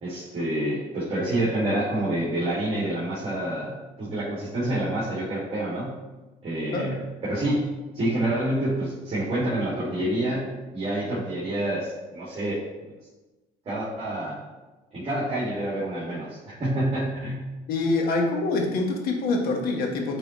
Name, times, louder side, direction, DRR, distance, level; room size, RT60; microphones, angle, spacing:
voice 1, 0.0-5.9 6.4-7.0 7.2-7.6 7.9-12.6 13.7-14.4 14.9-17.4, right 1 dB, 35° right, -8 dB, 2.0 m, -27 dB
voice 2, 17.7-20.2, left 3 dB, 70° left, 2 dB, 1.2 m, -25 dB
9.1 x 4.0 x 3.0 m, 1.1 s
cardioid pair, 120°, 16 cm